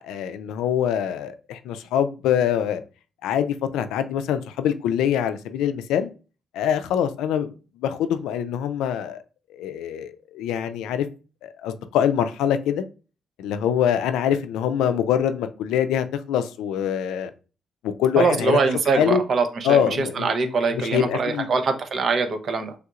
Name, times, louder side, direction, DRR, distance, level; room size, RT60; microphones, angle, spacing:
voice 1, 0.0-2.8 3.2-6.1 6.5-9.2 9.5-11.1 11.4-12.8 13.4-17.3 17.8-18.6 18.9-19.2 19.6-21.5, left 9 dB, 90° left, 0.3 m, -24 dB
voice 2, 18.2-22.7, right 4 dB, 55° right, 0.6 m, -23 dB
3.4 x 2.9 x 2.4 m
cardioid pair, 90°, 0 cm